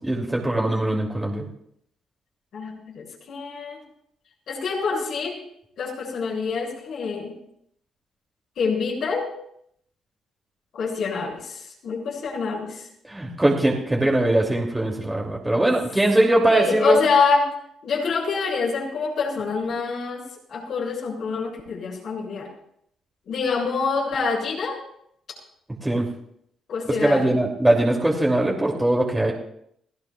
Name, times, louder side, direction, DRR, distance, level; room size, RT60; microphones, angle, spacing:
voice 1, 0.0-1.4 13.1-17.0 25.8-26.1 26.9-29.3, right 1 dB, 10° right, -1 dB, 2.8 m, -21 dB
voice 2, 2.5-3.8 4.5-5.3 5.8-7.3 8.6-9.3 10.7-12.9 16.5-17.5 17.8-20.2 20.5-22.5 23.3-24.8 26.7-27.3, left 5 dB, 65° left, -4 dB, 7.0 m, -26 dB
30.0 x 16.0 x 2.4 m, 0.71 s
cardioid pair, 90°, 0 cm